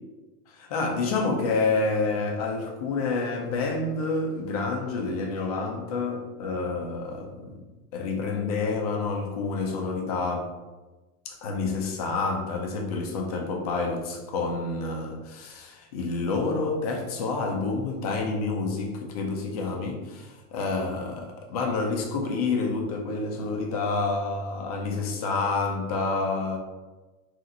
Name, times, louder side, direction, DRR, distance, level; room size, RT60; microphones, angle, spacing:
voice 1, 0.5-7.7 7.9-10.5 11.3-26.6, left 3 dB, 30° left, 1 dB, 0.4 m, -28 dB
4.1 x 2.5 x 3.7 m, 1.2 s
supercardioid pair, 170°, 42 cm